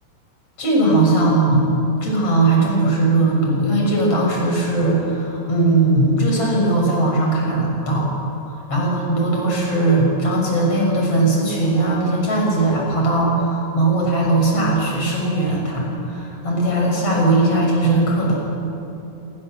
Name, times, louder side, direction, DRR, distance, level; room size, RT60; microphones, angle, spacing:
voice 1, 0.6-1.7 1.9-8.1 8.5-18.4, right 2 dB, 30° left, -1 dB, 7.0 m, -19 dB
27.5 x 25.0 x 7.6 m, 3.0 s
omnidirectional pair, 5.9 m